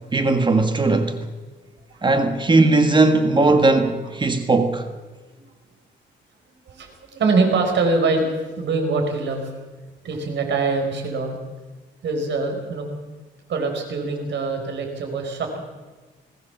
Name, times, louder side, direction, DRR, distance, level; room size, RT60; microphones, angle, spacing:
voice 1, 0.1-1.2 2.0-4.9, right 3 dB, 25° right, 1.7 m, -18 dB
voice 2, 1.9-2.3 3.5-3.6 4.2-4.3 5.4-5.5 6.7-9.4 10.0-11.4 12.0-12.9 13.5-15.6, right 3 dB, 65° right, 5.3 m, -24 dB
21.0 x 18.5 x 7.2 m
cardioid pair, 120°, 20 cm